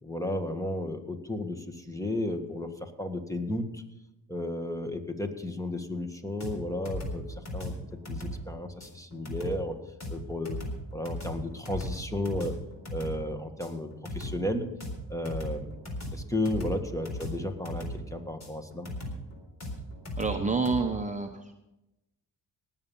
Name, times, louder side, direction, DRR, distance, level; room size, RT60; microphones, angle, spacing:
voice 1, 0.0-3.8 4.3-7.7 8.1-9.8 10.1-10.6 10.9-12.5 12.9-14.7 15.1-15.8 16.1-18.9, left 1 dB, 5° left, 7 dB, 1.6 m, -33 dB
sound 1, 6.4-20.8, left 1 dB, 40° left, 4.0 m, -38 dB
voice 2, 20.2-21.5, right 4 dB, 15° right, 3 dB, 1.0 m, -28 dB
18.5 x 7.4 x 5.6 m, 0.95 s
cardioid pair, 80°, 43 cm